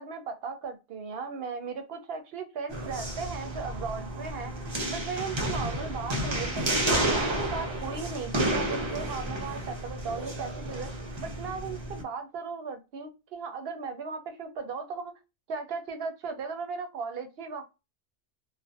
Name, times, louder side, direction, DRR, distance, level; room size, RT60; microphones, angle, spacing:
voice 1, 0.0-4.5 4.9-10.9 11.2-15.1 15.5-17.6, right 5 dB, 65° right, 6 dB, 0.9 m, -37 dB
sound 1, 2.7-12.0, right 1 dB, 30° right, 0.6 m, -31 dB
2.5 x 2.2 x 2.2 m, 0.26 s
omnidirectional pair, 1.1 m